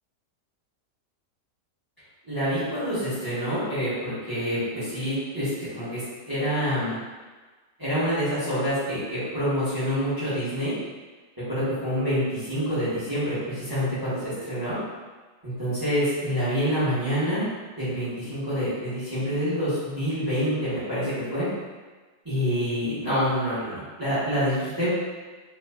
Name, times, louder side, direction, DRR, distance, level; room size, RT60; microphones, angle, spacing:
voice 1, 2.2-5.5 5.7-7.0 7.8-10.7 11.5-14.8 15.4-17.4 17.8-21.5 22.2-24.9, equal, 20° right, -13 dB, 0.7 m, -27 dB
3.0 x 2.2 x 2.2 m, 1.3 s
omnidirectional pair, 1.7 m